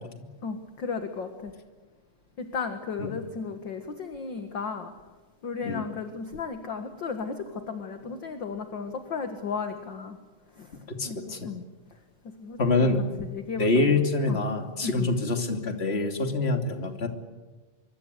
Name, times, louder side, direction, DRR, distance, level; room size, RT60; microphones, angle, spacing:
voice 1, 0.4-1.5 2.4-4.9 5.4-10.2 10.5-11.2 11.4-11.6 12.4-12.9 13.2-14.4 14.8-15.1, left 5 dB, 45° left, 7 dB, 1.8 m, -35 dB
voice 2, 10.9-11.5 12.6-13.0 13.6-17.1, left 3 dB, 20° left, 5 dB, 2.6 m, -25 dB
25.0 x 24.0 x 8.3 m, 1.3 s
omnidirectional pair, 3.8 m